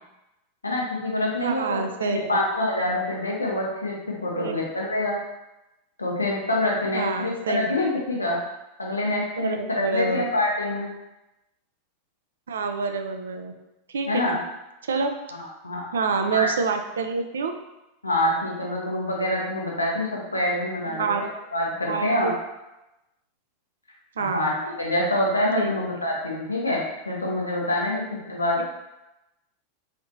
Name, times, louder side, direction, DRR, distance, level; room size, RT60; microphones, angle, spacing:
voice 1, 0.6-5.2 6.0-8.4 8.8-10.9 14.1-14.4 15.3-15.8 16.2-16.5 18.0-21.3 21.5-22.3 24.2-28.0 28.3-28.6, left 1 dB, 85° left, -3 dB, 0.9 m, -26 dB
voice 2, 1.4-2.2 4.4-4.6 6.9-7.8 9.4-10.2 12.5-13.5 13.9-14.4 14.9-15.2 15.9-17.6 21.0-21.2 21.9-22.3 24.2-24.5 25.5-26.0 28.6-28.7, right 4 dB, 70° right, 6 dB, 0.4 m, -27 dB
4.2 x 2.7 x 2.6 m, 0.95 s
figure-of-eight pair, 85°, 0 cm